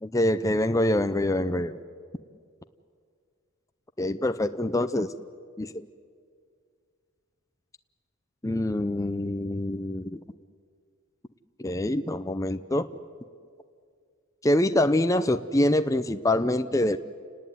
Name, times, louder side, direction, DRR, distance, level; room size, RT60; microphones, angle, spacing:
voice 1, 0.0-1.7 4.0-5.1 5.6-5.8 8.4-10.2 11.6-12.9 14.4-17.0, left 1 dB, 15° left, 9 dB, 0.6 m, -25 dB
29.5 x 19.0 x 9.4 m, 2.2 s
head